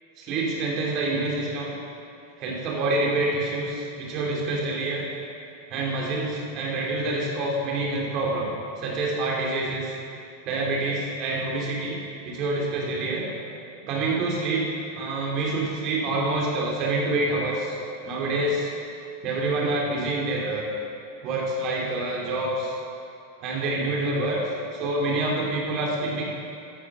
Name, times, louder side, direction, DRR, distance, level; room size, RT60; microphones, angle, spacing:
voice 1, 0.2-1.7 2.4-5.1 5.7-8.5 8.8-9.9 10.4-12.0 12.2-13.3 13.8-14.7 14.9-17.8 18.0-18.7 19.2-20.7 21.2-22.7 23.4-26.3, right 2 dB, 40° right, -3 dB, 3.1 m, -27 dB
15.0 x 10.5 x 3.8 m, 2.6 s
figure-of-eight pair, 90°, 0 cm